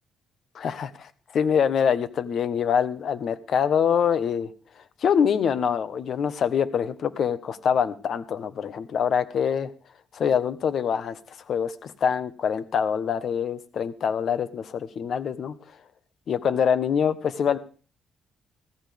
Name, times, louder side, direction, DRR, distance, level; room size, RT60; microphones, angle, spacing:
voice 1, 1.3-4.5 5.0-9.7 10.1-15.5 16.3-17.6, left 7 dB, 60° left, 13 dB, 1.2 m, -25 dB
16.0 x 14.5 x 3.6 m, 0.38 s
cardioid pair, 90°, 0 cm